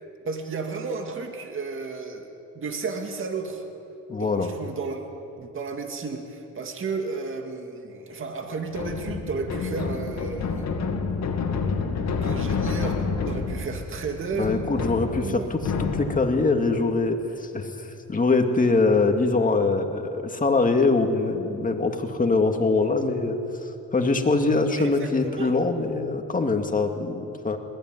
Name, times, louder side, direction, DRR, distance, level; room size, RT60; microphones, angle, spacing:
voice 1, 0.2-2.3 2.6-3.6 4.2-5.0 5.4-10.7 12.2-14.6 15.2-15.5 24.7-25.5, right 4 dB, 45° right, 4 dB, 2.2 m, -33 dB
voice 2, 4.1-4.5 14.3-15.6 15.9-27.6, left 3 dB, 25° left, 4 dB, 2.3 m, -23 dB
sound 1, 8.7-16.5, left 5 dB, 65° left, 2.4 m, -29 dB
21.0 x 15.5 x 9.5 m, 2.8 s
cardioid pair, 90°, 30 cm